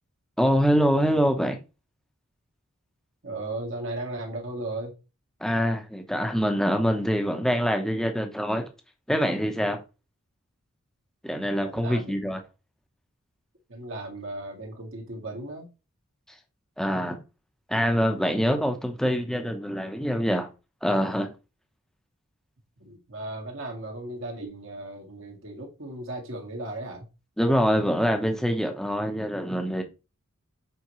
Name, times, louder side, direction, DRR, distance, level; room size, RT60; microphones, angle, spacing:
voice 1, 0.4-1.6 5.4-8.6 9.1-9.8 11.2-12.4 16.8-17.2 17.7-20.5 20.8-21.3 27.4-29.8, equal, ahead, 0.9 m, -24 dB
voice 2, 3.2-4.9 11.5-12.1 13.7-15.7 22.8-27.1, right 2 dB, 65° right, 2.0 m, -36 dB
7.3 x 4.5 x 3.1 m
head